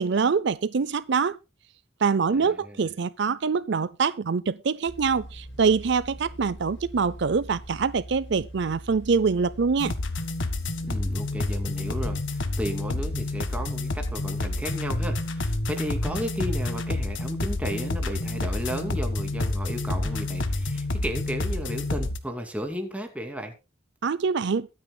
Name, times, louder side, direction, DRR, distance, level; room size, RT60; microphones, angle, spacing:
voice 1, 0.0-1.4 2.0-9.9 24.0-24.7, right 5 dB, 65° right, 0.5 m, -24 dB
voice 2, 2.3-2.9 10.9-23.5, equal, 5° right, 2.6 m, -34 dB
sound 1, 4.9-22.0, right 1 dB, 70° left, 5.5 m, -43 dB
sound 2, 9.8-22.2, left 2 dB, 90° left, 1.6 m, -29 dB
22.5 x 9.3 x 2.3 m
head